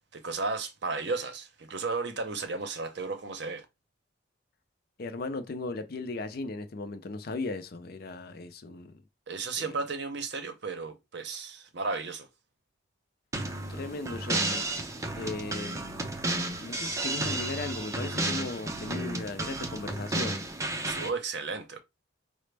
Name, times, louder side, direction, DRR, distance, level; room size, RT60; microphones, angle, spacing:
voice 1, 0.1-3.6 9.3-12.3 20.9-21.8, right 4 dB, 55° right, 0.6 m, -34 dB
voice 2, 5.0-9.0 9.6-9.7 13.7-14.7 15.1-16.1 16.6-20.4, left 3 dB, 50° left, 0.5 m, -37 dB
sound 1, 13.3-21.1, right 2 dB, 15° right, 0.5 m, -32 dB
4.9 x 2.0 x 3.3 m
head